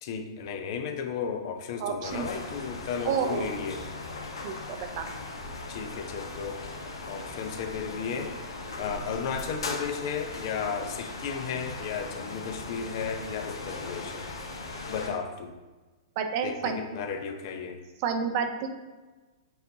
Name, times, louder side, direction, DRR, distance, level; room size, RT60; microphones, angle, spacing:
voice 1, 0.0-3.8 5.7-6.6 7.0-8.3 8.8-14.3 14.9-15.5 16.4-17.8, left 6 dB, 55° left, 5 dB, 0.6 m, -34 dB
voice 2, 1.8-2.3 3.0-3.5 4.4-5.0 16.2-16.8 18.0-18.7, right 6 dB, 50° right, 6 dB, 0.6 m, -29 dB
sound 1, 2.0-15.1, left 3 dB, 85° left, 0.8 m, -39 dB
7.5 x 2.6 x 2.7 m, 1.2 s
hypercardioid pair, 125°, 3 cm